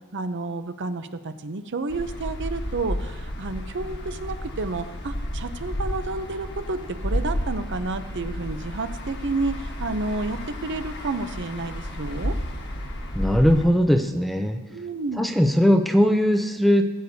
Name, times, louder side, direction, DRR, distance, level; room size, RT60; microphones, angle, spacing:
voice 1, 0.1-12.3 14.7-15.2, right 3 dB, 55° right, 10 dB, 0.6 m, -30 dB
sound 1, 1.9-13.7, equal, 50° left, 1.3 m, -32 dB
voice 2, 13.1-14.6 15.2-16.9, equal, ahead, 6 dB, 0.4 m, -19 dB
18.5 x 8.3 x 2.7 m, 1.2 s
head